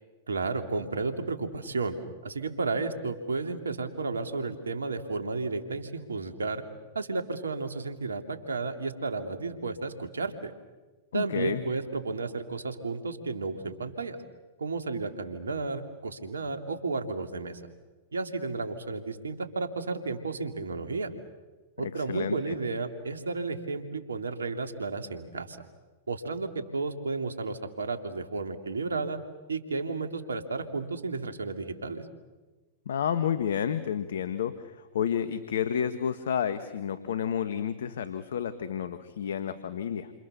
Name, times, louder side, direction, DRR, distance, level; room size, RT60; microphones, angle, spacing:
voice 1, 0.3-2.0 2.2-6.6 6.9-10.5 11.1-14.2 14.6-17.6 18.1-21.1 21.8-25.6 26.1-29.2 29.5-32.0, right 3 dB, 85° right, 6 dB, 3.0 m, -32 dB
voice 2, 11.1-11.6 21.8-22.6 32.8-40.1, left 8 dB, 70° left, 11 dB, 1.5 m, -30 dB
29.5 x 27.5 x 7.0 m, 1.2 s
hypercardioid pair, 105°, 0 cm